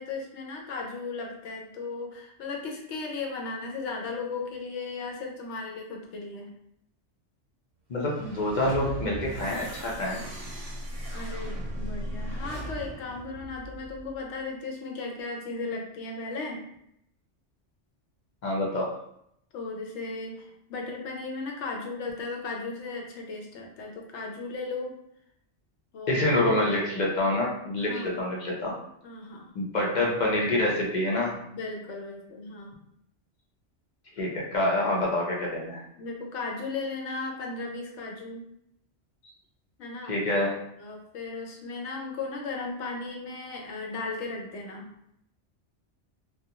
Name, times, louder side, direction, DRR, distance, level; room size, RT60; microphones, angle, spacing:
voice 1, 0.0-6.5 11.1-16.6 19.5-25.0 25.9-26.2 27.8-28.2 29.0-29.5 31.5-32.8 36.0-38.4 39.8-40.2 40.8-44.9, left 3 dB, 75° left, 1 dB, 0.9 m, -36 dB
voice 2, 7.9-10.2 18.4-18.9 26.1-28.7 29.5-31.3 34.2-35.8 40.1-40.6, left 1 dB, 50° left, -3 dB, 0.6 m, -26 dB
sound 1, 8.0-14.2, right 1 dB, 50° right, 0.4 m, -37 dB
2.4 x 2.3 x 2.8 m, 0.75 s
omnidirectional pair, 1.2 m